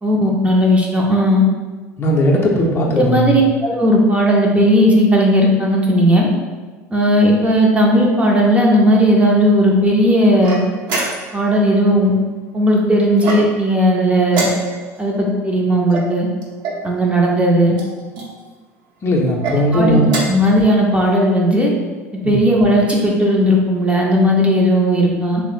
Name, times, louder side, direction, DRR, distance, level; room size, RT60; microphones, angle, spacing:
voice 1, 0.0-1.4 3.0-6.3 6.9-10.6 11.3-12.1 12.5-14.5 15.0-16.3 16.8-17.8 19.7-21.7 22.2-25.4, equal, 15° right, -2 dB, 0.5 m, -15 dB
voice 2, 2.0-3.3 19.0-20.1 22.2-22.4, equal, 30° left, -2 dB, 0.6 m, -17 dB
sound 1, 10.4-11.5 13.2-13.8 14.3-15.0 15.9-16.9 17.7-18.3 19.2-19.6 20.0-20.5, right 2 dB, 55° right, 0.7 m, -25 dB
3.2 x 2.0 x 3.1 m, 1.3 s
hypercardioid pair, 75°, 8 cm